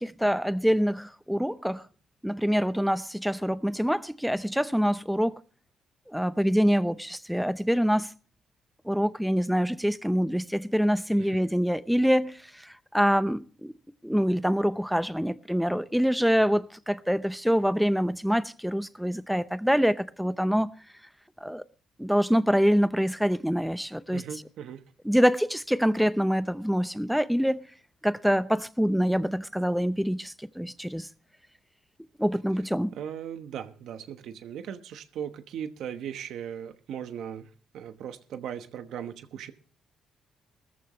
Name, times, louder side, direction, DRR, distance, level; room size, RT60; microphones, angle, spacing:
voice 1, 0.0-1.8 2.2-5.4 6.1-8.1 8.9-12.4 12.9-13.7 14.0-20.7 21.4-21.6 22.0-24.2 25.0-27.6 28.0-31.1 32.2-32.9, equal, ahead, 0.7 m, -25 dB
voice 2, 24.1-24.8 32.9-37.5 37.7-39.5, right 9 dB, 80° right, 1.1 m, -38 dB
18.0 x 14.0 x 3.1 m
cardioid pair, 90°, 0 cm